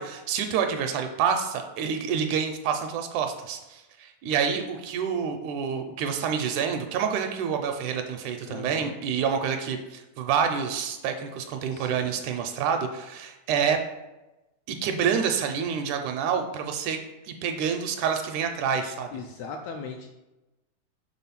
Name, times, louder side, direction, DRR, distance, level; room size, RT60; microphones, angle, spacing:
voice 1, 0.0-13.8 14.7-17.0 17.3-19.1, right 7 dB, 80° right, 5 dB, 1.9 m, -28 dB
voice 2, 8.5-8.9 11.7-12.0 19.1-20.1, left 5 dB, 80° left, 3 dB, 1.7 m, -38 dB
6.1 x 3.7 x 5.7 m, 1.0 s
omnidirectional pair, 3.7 m